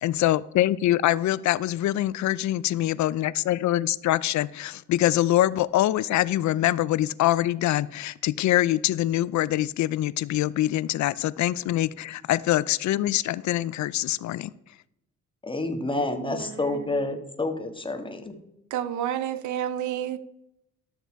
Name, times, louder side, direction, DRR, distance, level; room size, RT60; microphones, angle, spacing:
voice 1, 0.0-14.5, left 14 dB, 70° left, 0.5 m, -24 dB
voice 2, 15.4-18.3, left 2 dB, 15° left, 1.5 m, -29 dB
voice 3, 16.1-16.9 18.7-20.2, right 10 dB, 75° right, 0.8 m, -30 dB
12.0 x 6.7 x 4.7 m
cardioid pair, 90°, 30 cm